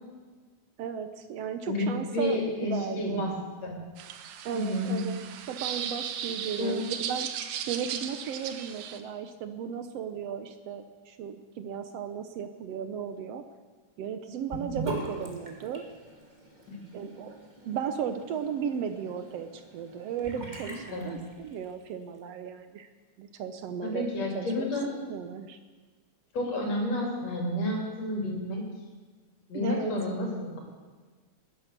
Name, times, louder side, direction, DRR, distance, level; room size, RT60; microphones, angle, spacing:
voice 1, 0.8-3.3 4.5-5.2 5.5-7.3 7.7-13.4 14.0-15.8 16.9-17.4 17.7-22.9 23.2-24.1 24.4-24.7 25.0-25.6 29.5-29.9, right 7 dB, 70° right, 9 dB, 1.7 m, -35 dB
voice 2, 2.1-3.3 3.6-3.8 4.5-5.0 6.6-6.8 16.7-16.8 20.9-21.2 23.8-24.9 26.3-28.6 29.5-30.6, left 1 dB, 60° left, 0 dB, 4.4 m, -30 dB
sound 1, 4.0-9.0, right 9 dB, 85° right, 2.4 m, -36 dB
Sink (filling or washing) / Bathtub (filling or washing), 14.5-21.8, right 2 dB, 15° right, 1.8 m, -41 dB
19.0 x 10.5 x 6.7 m, 1.4 s
omnidirectional pair, 3.4 m